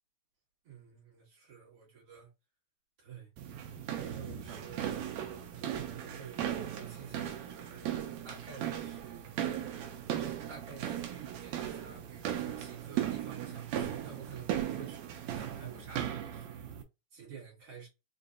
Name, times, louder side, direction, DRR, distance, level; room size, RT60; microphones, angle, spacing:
voice 1, 0.6-2.3 3.0-3.3 4.0-5.0 5.6-9.3 10.2-15.0 15.3-16.6 17.1-17.9, right 7 dB, 50° right, 2.3 m, -50 dB
sound 1, 3.4-16.8, right 10 dB, 75° right, 1.7 m, -37 dB
5.3 x 2.5 x 2.5 m
omnidirectional pair, 3.7 m